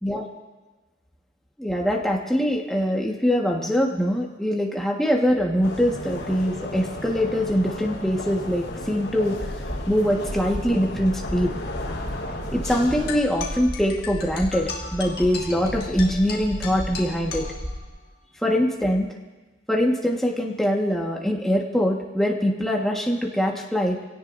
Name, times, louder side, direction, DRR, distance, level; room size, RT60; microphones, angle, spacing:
voice 1, 1.6-9.3 9.9-11.5 12.5-17.5 18.4-19.1 19.7-24.0, equal, ahead, -2 dB, 1.6 m, -23 dB
sound 1, 5.6-13.2, left 1 dB, 70° left, 4.8 m, -34 dB
sound 2, 9.4-17.8, equal, 30° right, 4.9 m, -35 dB
sound 3, 13.1-18.1, left 4 dB, 55° left, 1.8 m, -37 dB
24.5 x 17.5 x 2.7 m, 1.2 s
head